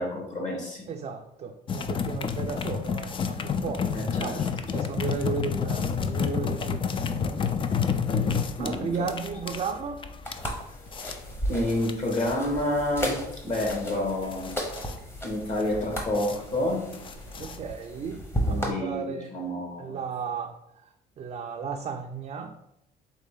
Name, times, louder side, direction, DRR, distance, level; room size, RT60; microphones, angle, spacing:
voice 1, 0.0-0.8 3.9-4.4 4.7-4.8 8.1-8.3 8.6-9.1 11.5-13.2 13.4-14.5 15.2-16.8 18.4-20.0, left 1 dB, 45° left, 0 dB, 1.7 m, -29 dB
voice 2, 0.9-4.4 4.7-7.5 8.6-10.0 17.4-19.3 19.8-22.5, right 5 dB, 35° right, 3 dB, 0.4 m, -35 dB
sound 1, 1.7-18.0, left 6 dB, 30° left, 0.4 m, -30 dB
sound 2, 10.2-18.7, equal, 15° left, 0.9 m, -34 dB
4.1 x 3.4 x 3.7 m, 0.80 s
cardioid pair, 110°, 17 cm